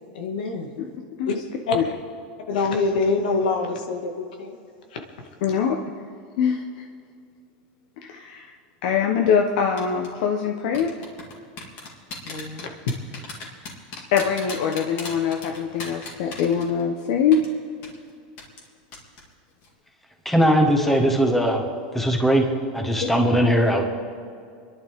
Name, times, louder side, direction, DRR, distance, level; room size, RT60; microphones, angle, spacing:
voice 1, 0.1-0.7 1.3-1.4 1.7-1.8 2.5-4.6 12.2-12.7, left 3 dB, 90° left, 3 dB, 2.0 m, -25 dB
voice 2, 5.4-5.8 6.4-6.8 8.0-8.5 8.8-10.9 14.1-17.4 23.0-23.1, left 7 dB, 65° left, 3 dB, 1.0 m, -23 dB
sound 1, 9.8-10.1 10.7-17.0 17.3-17.5 17.8-17.9 18.4-18.7 18.9-19.2 19.5-19.7, left 4 dB, 50° left, 3.1 m, -36 dB
voice 3, 20.2-21.6 21.9-22.5 22.7-23.8, equal, 5° left, 2 dB, 1.6 m, -19 dB
28.5 x 11.0 x 3.6 m, 2.3 s
supercardioid pair, 145°, 4 cm